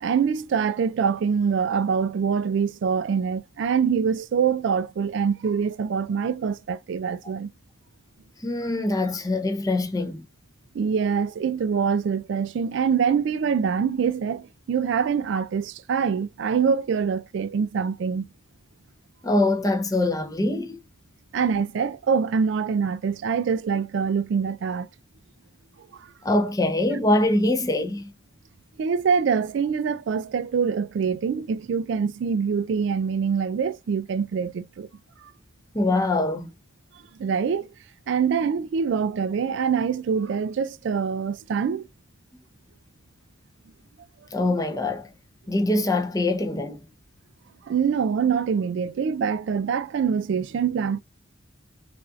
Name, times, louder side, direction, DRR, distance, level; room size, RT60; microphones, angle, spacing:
voice 1, 0.0-7.5 10.7-18.3 21.3-24.9 25.9-26.1 28.8-34.9 35.2-35.3 37.2-37.7 38.1-41.9 47.6-51.0, right 6 dB, 65° right, 0.3 m, -24 dB
voice 2, 8.4-10.2 19.2-20.8 26.2-28.1 35.7-36.5 44.3-45.1 45.5-46.8, left 2 dB, 15° left, 0.7 m, -23 dB
5.5 x 2.5 x 2.4 m
head